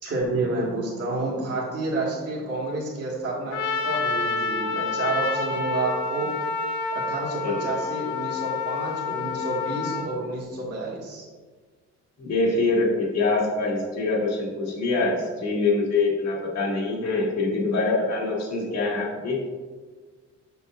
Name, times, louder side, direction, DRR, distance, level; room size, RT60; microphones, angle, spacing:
voice 1, 0.0-6.3 6.9-11.2, right 2 dB, 55° right, -6 dB, 1.7 m, -29 dB
Trumpet, 3.5-10.1, left 4 dB, 80° left, 0.7 m, -28 dB
voice 2, 12.2-19.4, left 3 dB, 60° left, -3 dB, 1.8 m, -24 dB
6.9 x 5.7 x 2.4 m, 1.5 s
cardioid pair, 90°, 30 cm